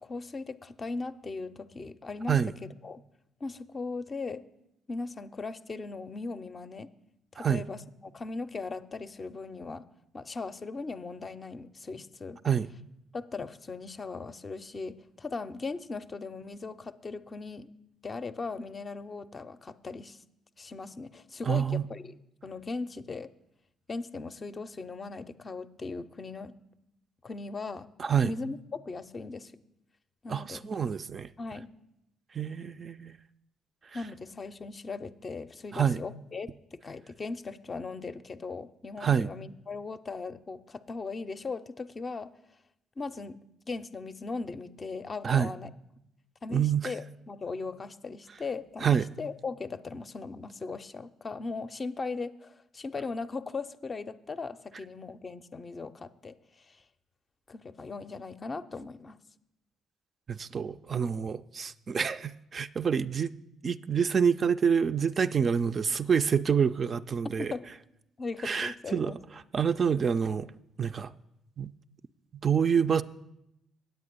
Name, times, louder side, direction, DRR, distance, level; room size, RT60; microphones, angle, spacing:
voice 1, 0.0-3.0 3.4-4.4 4.9-6.9 7.3-9.9 10.1-12.4 13.1-17.7 18.0-20.2 20.6-22.1 22.4-23.3 23.9-26.5 27.2-27.9 28.2-29.5 30.2-30.6 31.4-31.7 33.9-42.3 43.0-43.4 43.7-45.7 46.4-56.3 56.7-56.8 57.5-59.2 67.4-67.7 68.2-69.2, left 4 dB, 35° left, 0.5 m, -38 dB
voice 2, 21.5-21.8 28.0-28.3 30.3-31.3 32.3-33.2 35.7-36.0 39.0-39.3 45.2-45.5 46.5-46.9 48.8-49.1 60.3-63.3 63.6-67.5 68.4-69.2 69.5-70.5 70.8-71.1 71.6-71.7 72.4-73.0, right 7 dB, 40° right, 0.3 m, -27 dB
9.0 x 7.9 x 5.2 m
figure-of-eight pair, 45°, 0 cm